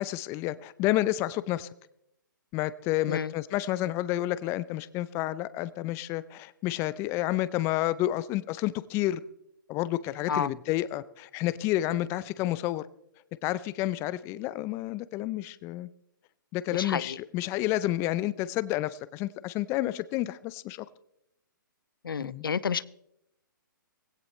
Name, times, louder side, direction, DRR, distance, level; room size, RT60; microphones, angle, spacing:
voice 1, 0.0-1.7 2.5-9.2 9.7-12.9 13.4-15.9 16.5-20.9 22.2-22.4, left 15 dB, 25° left, 17 dB, 0.5 m, -30 dB
voice 2, 16.7-17.2 22.0-22.8, left 6 dB, 80° left, 19 dB, 0.6 m, -30 dB
19.0 x 16.5 x 3.1 m, 0.79 s
hypercardioid pair, 135°, 11 cm